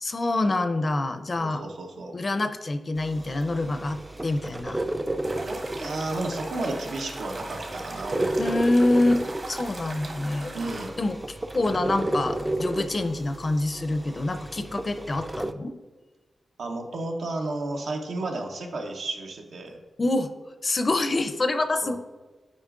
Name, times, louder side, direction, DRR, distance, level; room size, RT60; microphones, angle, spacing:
voice 1, 0.0-1.7 2.1-4.8 8.4-10.5 11.0-15.7 20.0-20.3 20.6-22.0, left 2 dB, 45° left, 9 dB, 0.5 m, -26 dB
voice 2, 1.4-2.1 5.5-8.6 10.5-10.9 16.6-19.8 21.8-22.0, right 2 dB, 85° right, 2 dB, 0.8 m, -32 dB
sound 1, 3.0-15.5, right 1 dB, 20° right, 0.3 m, -33 dB
sound 2, 5.2-10.9, right 2 dB, 50° right, 1.2 m, -39 dB
8.2 x 4.9 x 2.5 m, 1.3 s
cardioid pair, 70°, 0 cm